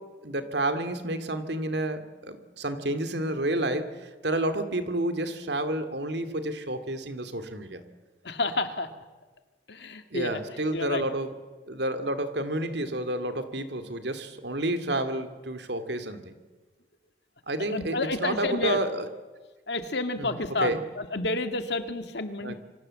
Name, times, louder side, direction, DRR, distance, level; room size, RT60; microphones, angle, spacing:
voice 1, 0.0-7.8 10.1-11.3 11.7-16.3 17.5-19.1 20.2-20.8 22.4-22.6, right 1 dB, 70° right, 10 dB, 2.5 m, -30 dB
voice 2, 8.2-8.9 9.7-10.4 10.7-11.0 17.6-18.8 19.7-22.6, left 2 dB, 70° left, 8 dB, 2.1 m, -30 dB
27.0 x 25.0 x 7.7 m, 1.3 s
head